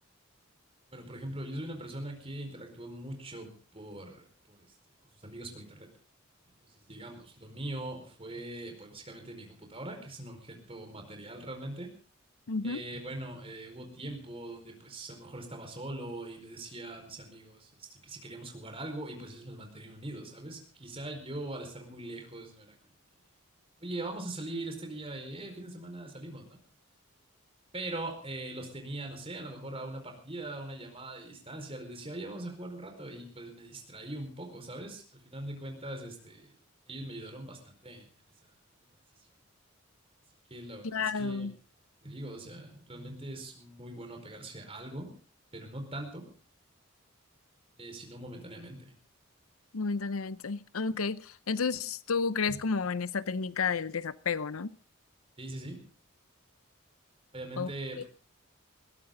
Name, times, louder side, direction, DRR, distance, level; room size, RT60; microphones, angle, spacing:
voice 1, 0.9-4.7 5.2-5.9 6.5-11.9 12.6-22.8 23.8-26.6 27.7-36.5 36.9-38.5 40.5-41.5 42.0-45.1 45.5-46.3 47.8-48.9 52.5-52.6 55.4-55.8 57.3-58.1, right 1 dB, 25° right, 4.7 m, -42 dB
voice 2, 12.5-12.8 40.8-41.5 49.7-54.8 57.6-57.7 58.0-58.1, left 5 dB, 80° left, 0.7 m, -31 dB
21.0 x 17.0 x 3.8 m
head